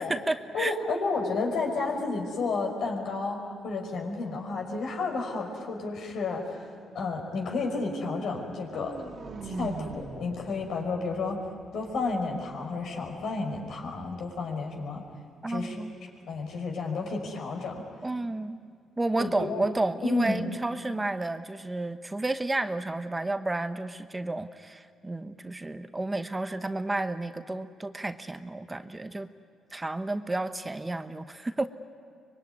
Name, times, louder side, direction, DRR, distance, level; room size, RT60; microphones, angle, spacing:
voice 1, 0.0-0.7 15.4-15.9 18.0-18.6 19.0-29.3 29.7-31.7, right 2 dB, 15° right, 9 dB, 1.0 m, -31 dB
voice 2, 0.5-6.7 6.9-9.0 9.4-11.4 11.7-15.0 15.5-15.8 16.3-17.8 19.2-19.6 20.0-20.5, left 3 dB, 70° left, 1 dB, 5.5 m, -31 dB
sound 1, 8.4-12.4, right 3 dB, 50° right, 2.0 m, -42 dB
24.5 x 23.0 x 9.6 m, 2.1 s
cardioid pair, 90°, 0 cm